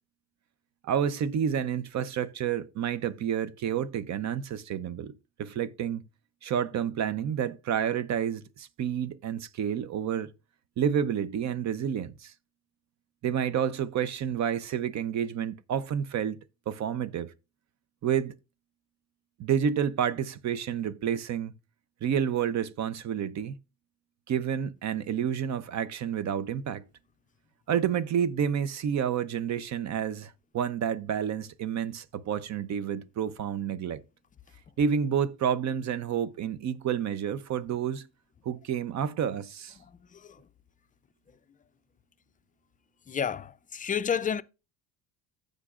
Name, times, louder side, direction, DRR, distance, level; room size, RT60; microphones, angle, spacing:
voice 1, 0.8-6.0 6.4-10.3 10.8-12.3 13.2-16.4 16.7-17.3 18.0-18.3 19.4-21.5 22.0-23.6 24.3-26.8 27.7-34.0 34.8-38.1 38.4-39.8, right 8 dB, 45° right, 0.8 m, -29 dB
voice 2, 43.1-43.4 43.7-44.4, left 7 dB, 20° left, 0.4 m, -28 dB
15.0 x 5.2 x 2.5 m
supercardioid pair, 100°, 37 cm